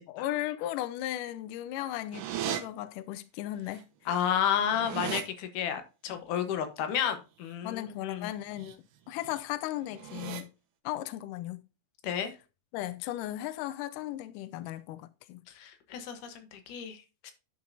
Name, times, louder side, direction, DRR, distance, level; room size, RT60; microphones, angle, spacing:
voice 1, 0.1-3.9 6.1-6.2 7.6-8.8 9.1-10.5 10.8-11.7 12.7-15.4, left 14 dB, 85° left, 1.8 m, -36 dB
sound 1, 2.1-2.6 3.8-3.9 4.2-5.2 8.4-8.7 9.1-9.4 9.9-10.4, right 11 dB, 70° right, 2.3 m, -37 dB
voice 2, 4.1-8.3 12.0-12.3 15.6-17.3, left 9 dB, 65° left, 2.4 m, -31 dB
11.0 x 6.5 x 2.7 m
omnidirectional pair, 4.3 m